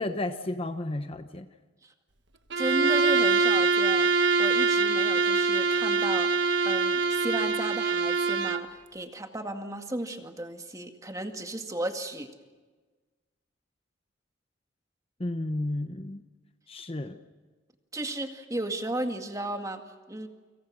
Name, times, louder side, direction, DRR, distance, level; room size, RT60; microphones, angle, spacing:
voice 1, 0.0-1.5 15.2-16.2 16.7-17.2, left 1 dB, 30° left, 9 dB, 0.9 m, -32 dB
Bowed string instrument, 2.5-8.7, right 4 dB, 65° right, 1.5 m, -24 dB
voice 2, 2.6-4.1 4.4-6.3 6.6-12.3 17.9-19.8 20.1-20.3, right 1 dB, 20° right, 5 dB, 2.1 m, -34 dB
29.5 x 26.0 x 6.3 m, 1.3 s
head